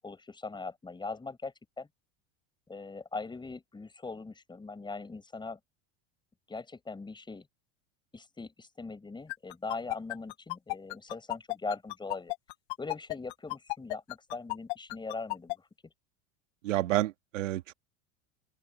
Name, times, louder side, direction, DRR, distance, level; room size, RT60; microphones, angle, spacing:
voice 1, 0.0-1.9 2.7-5.6 6.5-7.5 8.1-12.3 12.8-15.6, left 3 dB, 10° left, 5.2 m, -40 dB
sound 1, 9.3-15.5, left 28 dB, 65° left, 4.6 m, -34 dB
voice 2, 16.6-17.7, right 15 dB, 85° right, 1.8 m, -29 dB
open air
supercardioid pair, 115°, 37 cm